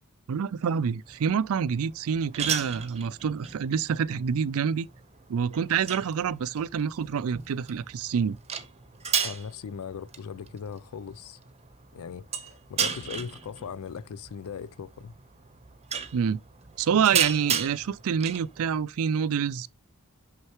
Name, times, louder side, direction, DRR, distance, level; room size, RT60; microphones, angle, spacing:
voice 1, 0.3-4.9 5.3-8.4 16.1-16.4 16.8-19.7, right 7 dB, 70° right, 0.4 m, -27 dB
sound 1, 1.1-18.8, right 7 dB, 30° right, 0.8 m, -35 dB
voice 2, 9.2-11.4 11.9-15.2, left 6 dB, 75° left, 0.4 m, -39 dB
6.4 x 5.6 x 3.0 m
head